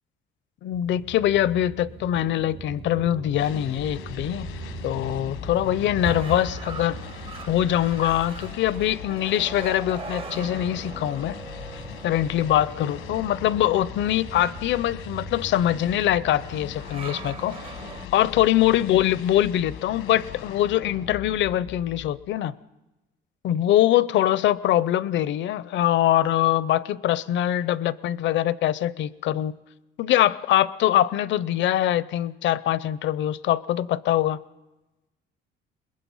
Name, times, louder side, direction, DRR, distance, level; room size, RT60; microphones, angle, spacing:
voice 1, 0.6-4.5 4.8-7.0 7.5-11.4 12.0-17.6 18.1-22.5 23.4-29.5 30.0-34.4, left 12 dB, 65° left, 18 dB, 0.6 m, -23 dB
sound 1, 0.7-18.1, right 6 dB, 30° right, 0.6 m, -39 dB
sound 2, 3.4-22.4, left 10 dB, 85° left, 1.1 m, -40 dB
22.0 x 21.0 x 5.5 m, 1.1 s
cardioid pair, 150°, 20 cm